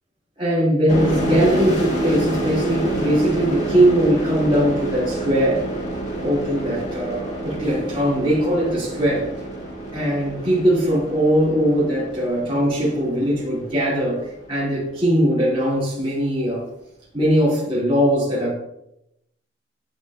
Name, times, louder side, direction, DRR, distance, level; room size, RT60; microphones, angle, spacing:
voice 1, 0.4-5.6 6.2-9.3 9.9-16.6 17.1-18.5, equal, 30° right, 2.5 m, -20 dB
sound 1, 0.9-14.3, right 2 dB, 35° left, 1.5 m, -28 dB
10.5 x 4.0 x 2.4 m
head